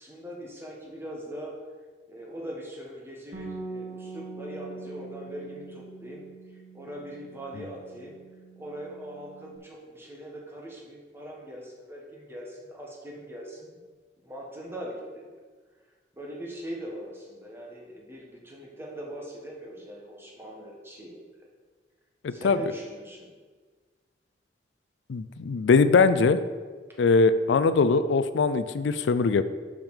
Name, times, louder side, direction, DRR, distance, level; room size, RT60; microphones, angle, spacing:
voice 1, 0.0-1.5 2.1-6.2 6.5-8.2 8.6-13.7 14.2-15.3 16.1-21.2 22.3-23.3, equal, 15° right, -2 dB, 1.4 m, -41 dB
Bass guitar, 3.3-9.6, right 3 dB, 75° right, 1.2 m, -43 dB
voice 2, 22.2-22.6 25.1-26.4 27.0-29.4, left 4 dB, 85° left, 12 dB, 0.4 m, -21 dB
6.1 x 5.2 x 6.5 m, 1.5 s
head